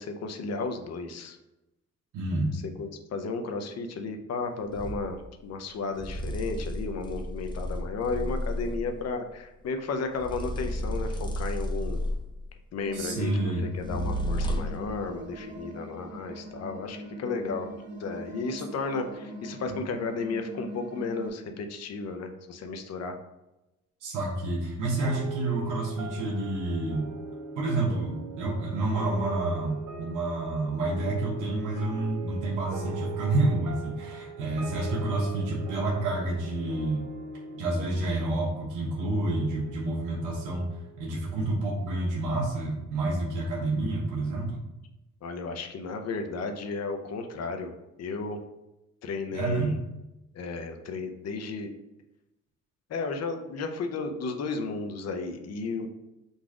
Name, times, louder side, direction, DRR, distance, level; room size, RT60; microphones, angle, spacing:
voice 1, 0.0-1.4 2.5-12.0 12.7-17.7 18.0-23.1 45.2-48.4 49.0-49.8 50.3-51.7 52.9-55.9, left 4 dB, 55° left, 6 dB, 0.6 m, -33 dB
voice 2, 2.1-2.5 12.9-13.7 24.0-27.1 27.6-37.1 37.5-40.7 41.0-44.6 49.3-49.7, right 2 dB, 90° right, -3 dB, 1.1 m, -29 dB
sound 1, 4.7-5.1 6.0-8.9 10.2-12.4 13.8-14.9, equal, 15° left, 0.6 m, -32 dB
sound 2, 12.8-21.3, equal, 35° right, 0.8 m, -42 dB
sound 3, 25.0-41.8, right 5 dB, 70° right, 0.8 m, -41 dB
4.0 x 2.4 x 4.7 m, 0.96 s
cardioid pair, 90°, 30 cm